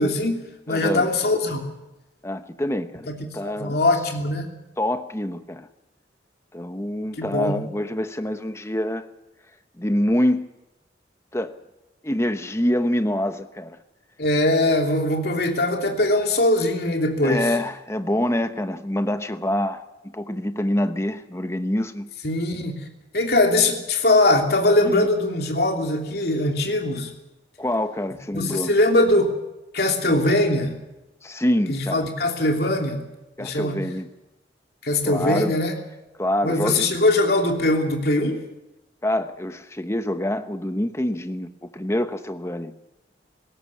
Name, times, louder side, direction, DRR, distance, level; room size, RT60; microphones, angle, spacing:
voice 1, 0.0-1.6 3.4-4.5 7.2-7.6 14.2-17.5 22.2-22.9 23.1-27.1 28.3-29.3 29.7-30.8 31.7-33.0 33.4-33.9 34.8-35.8 36.4-38.4, left 2 dB, 60° left, 3 dB, 3.0 m, -21 dB
voice 2, 0.7-1.1 2.2-3.1 3.3-3.8 4.8-5.7 6.5-9.0 9.8-10.5 11.3-11.6 12.0-13.8 17.2-22.1 24.8-25.1 27.6-28.7 31.2-32.1 33.4-34.1 35.0-35.5 36.2-36.9 39.0-41.5 41.7-42.7, left 1 dB, 15° left, 9 dB, 1.0 m, -25 dB
20.0 x 17.0 x 8.5 m, 0.98 s
head